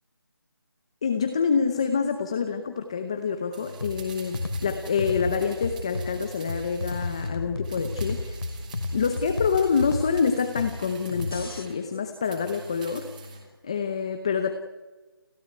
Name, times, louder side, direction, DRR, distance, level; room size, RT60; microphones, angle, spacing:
voice 1, 1.0-8.4 8.9-13.1 13.6-14.5, left 6 dB, 15° left, 8 dB, 0.8 m, -26 dB
sound 1, 3.5-7.4 7.6-11.8 12.2-13.4 13.7-13.8, right 1 dB, 20° right, 3.5 m, -43 dB
sound 2, 3.8-11.7, left 2 dB, 85° left, 3.3 m, -33 dB
29.5 x 13.5 x 9.3 m, 1.2 s
figure-of-eight pair, 175°, 12 cm